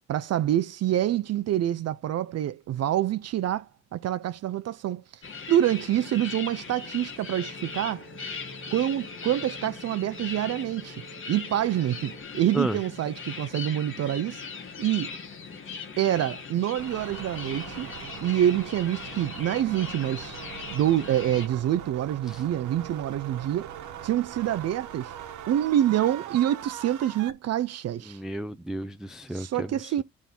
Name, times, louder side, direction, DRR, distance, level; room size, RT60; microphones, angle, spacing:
voice 1, 0.1-5.2 5.5-8.1 8.7-14.4 14.8-15.1 16.0-17.9 18.2-20.4 20.7-23.7 24.0-25.1 25.5-28.2 29.3-30.0, right 12 dB, 55° right, 0.5 m, -26 dB
sound 1, 5.2-21.5, left 5 dB, 40° left, 1.1 m, -39 dB
Telephone, 7.2-12.2, right 7 dB, 35° right, 1.1 m, -52 dB
sound 2, 16.8-27.3, right 10 dB, 80° right, 1.1 m, -41 dB
voice 2, 28.1-30.0, right 1 dB, ahead, 0.4 m, -32 dB
7.5 x 3.6 x 4.2 m
cardioid pair, 90°, 30 cm